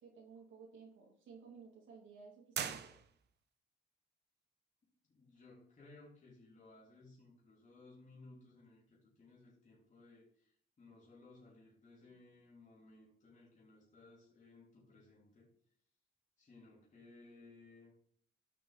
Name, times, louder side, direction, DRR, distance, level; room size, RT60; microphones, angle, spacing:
voice 1, 0.0-2.9, right 5 dB, 75° right, -1 dB, 2.7 m, -56 dB
sound 1, 2.5-3.5, right 8 dB, 60° right, 0.9 m, -42 dB
voice 2, 4.8-10.5 10.8-15.5 16.4-17.9, left 2 dB, 40° left, -5 dB, 3.5 m, -60 dB
12.0 x 6.7 x 4.2 m, 0.63 s
cardioid pair, 90°, 20 cm